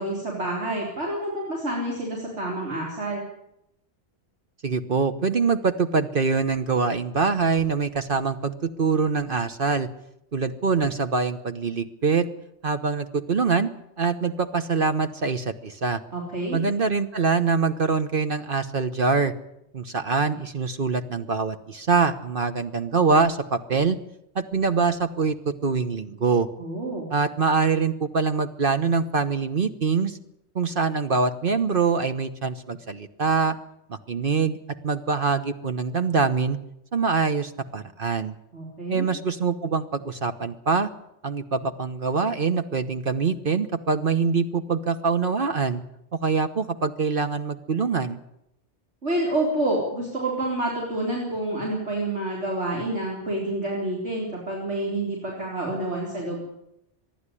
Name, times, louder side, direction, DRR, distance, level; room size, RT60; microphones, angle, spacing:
voice 1, 0.0-3.2 16.1-16.6 26.6-27.1 38.5-39.1 49.0-56.4, right 1 dB, 80° right, -2 dB, 4.3 m, -28 dB
voice 2, 4.6-9.9 10.3-12.3 12.6-13.7 14.0-16.0 16.5-19.3 19.7-24.0 24.3-26.5 27.1-30.2 30.5-33.6 33.9-34.6 34.8-36.6 36.9-38.3 38.9-40.9 41.2-45.8 46.1-48.2, right 5 dB, 55° right, 9 dB, 1.2 m, -24 dB
25.0 x 11.0 x 9.9 m, 0.82 s
omnidirectional pair, 1.2 m